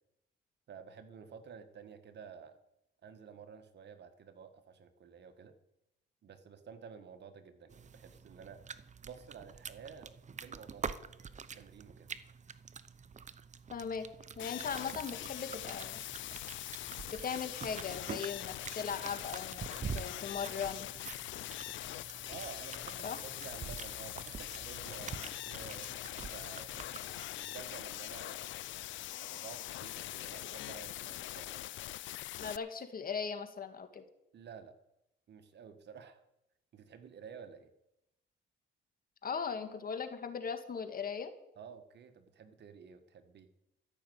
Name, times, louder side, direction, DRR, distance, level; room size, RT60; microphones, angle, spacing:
voice 1, 0.7-2.6 3.0-5.5 6.2-8.6 9.0-11.0 11.5-12.1 22.3-26.7 27.4-28.6 29.2-31.7 34.3-34.7 35.3-36.2 36.7-37.7 41.6-43.5, right 6 dB, 60° right, 9 dB, 1.5 m, -51 dB
sound 1, 7.7-27.2, right 6 dB, 35° right, 0.8 m, -46 dB
voice 2, 13.7-14.1 14.4-16.0 17.1-20.9 23.0-23.2 32.4-34.0 39.2-41.3, left 6 dB, 45° left, 8 dB, 1.9 m, -39 dB
sound 2, 14.4-32.6, left 15 dB, 70° left, 0.4 m, -43 dB
13.5 x 6.5 x 9.3 m, 0.87 s
cardioid pair, 90°, 20 cm